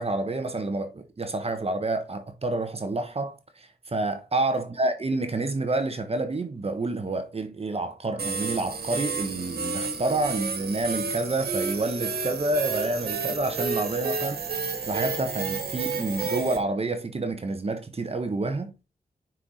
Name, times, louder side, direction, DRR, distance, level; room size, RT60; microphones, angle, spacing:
voice 1, 0.0-18.8, right 2 dB, 40° right, 1.0 m, -29 dB
sound 1, 8.2-16.6, right 4 dB, 85° right, 1.7 m, -31 dB
6.0 x 4.4 x 3.9 m
cardioid pair, 60°, 16 cm